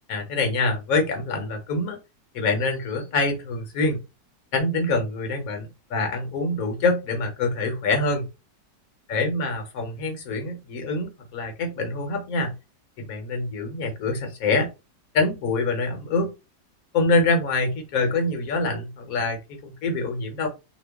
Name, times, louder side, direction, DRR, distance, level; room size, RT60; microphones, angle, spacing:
voice 1, 0.1-2.0 2.3-4.0 4.5-8.2 9.1-12.5 13.0-14.7 15.1-16.3 16.9-20.5, left 3 dB, 60° left, 3 dB, 1.2 m, -25 dB
3.0 x 2.3 x 3.4 m, 0.27 s
omnidirectional pair, 1.9 m